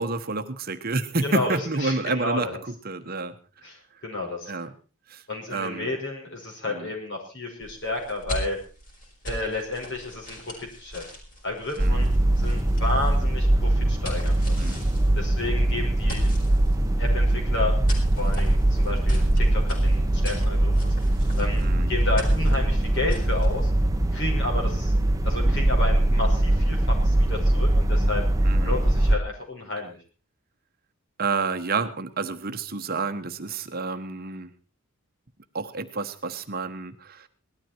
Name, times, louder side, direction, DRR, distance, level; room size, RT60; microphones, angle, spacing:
voice 1, 0.0-3.4 3.9-4.0 4.5-4.7 5.1-5.9 6.7-6.9 11.8-12.1 14.6-14.8 19.1-19.4 21.6-22.0 28.4-28.8 31.2-34.5 35.5-37.3, right 3 dB, 45° right, 8 dB, 1.1 m, -30 dB
voice 2, 1.2-2.4 3.6-3.8 4.0-4.5 5.3-8.6 9.2-11.0 11.4-12.1 12.4-14.7 15.2-16.3 17.0-17.7 18.1-20.9 21.4-21.6 21.9-23.7 24.1-24.9 25.2-28.2 28.6-30.0, left 2 dB, 55° left, 0 dB, 5.7 m, -31 dB
sound 1, 7.6-23.7, equal, 35° left, 5.5 m, -40 dB
sound 2, 11.8-29.2, right 1 dB, 15° right, 0.9 m, -22 dB
18.5 x 13.0 x 4.5 m, 0.36 s
head